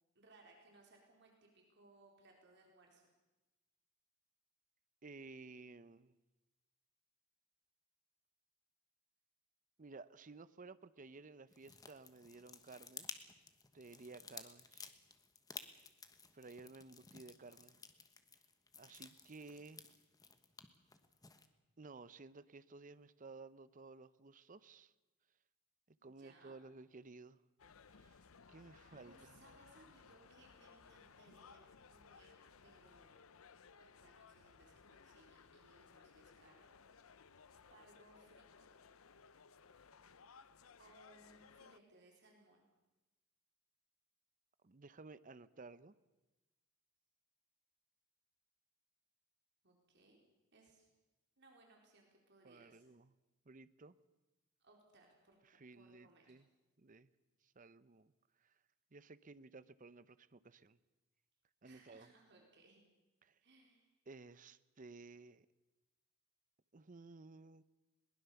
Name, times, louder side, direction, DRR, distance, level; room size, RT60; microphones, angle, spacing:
voice 1, 0.1-3.1 26.0-26.6 28.7-32.3 32.6-33.2 33.8-37.2 37.7-38.8 40.8-42.7 49.6-50.2 50.5-50.9 51.4-52.9 54.6-56.3 61.6-62.8 63.4-63.9, right 2 dB, 55° right, 0 dB, 4.3 m, -66 dB
voice 2, 5.0-6.2 9.8-13.1 13.7-14.9 16.3-17.8 18.8-19.9 21.8-24.9 26.0-27.4 27.9-28.2 28.5-29.2 44.6-45.9 52.4-53.1 53.5-54.0 55.4-56.5 56.8-57.1 57.4-58.1 58.4-58.5 58.9-60.8 61.6-62.1 63.3-63.4 64.1-65.5 66.7-67.6, right 3 dB, 40° right, 15 dB, 0.7 m, -55 dB
sound 1, 11.5-21.5, left 5 dB, 20° left, 1.2 m, -55 dB
sound 2, 27.6-41.8, left 5 dB, 80° left, 0.8 m, -62 dB
21.5 x 20.0 x 7.0 m, 1.1 s
head